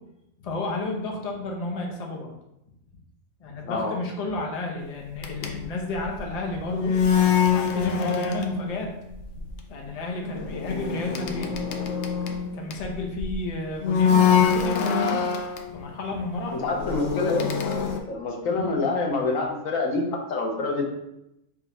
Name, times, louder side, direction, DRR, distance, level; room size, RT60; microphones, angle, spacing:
voice 1, 0.4-2.3 3.4-7.0 7.4-8.9 9.7-11.5 12.2-15.3 15.7-16.6 18.5-18.8, left 2 dB, 40° left, 1 dB, 0.6 m, -32 dB
voice 2, 3.7-4.0 16.5-17.5 18.1-20.8, left 3 dB, 80° left, 1 dB, 1.2 m, -26 dB
sound 1, 5.2-8.8 9.1-9.5 10.2-13.3 13.8-15.7 16.3-18.0, left 7 dB, 65° left, 0.8 m, -24 dB
3.9 x 2.9 x 4.2 m, 0.87 s
omnidirectional pair, 1.4 m